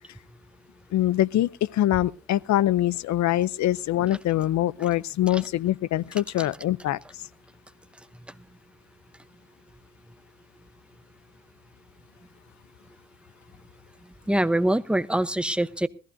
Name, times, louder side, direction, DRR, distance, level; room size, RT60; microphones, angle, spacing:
voice 1, 0.9-7.0, left 13 dB, 65° left, 0.6 m, -24 dB
voice 2, 14.3-15.9, right 1 dB, 5° right, 0.8 m, -24 dB
20.5 x 14.5 x 2.7 m
cardioid pair, 90°, 30 cm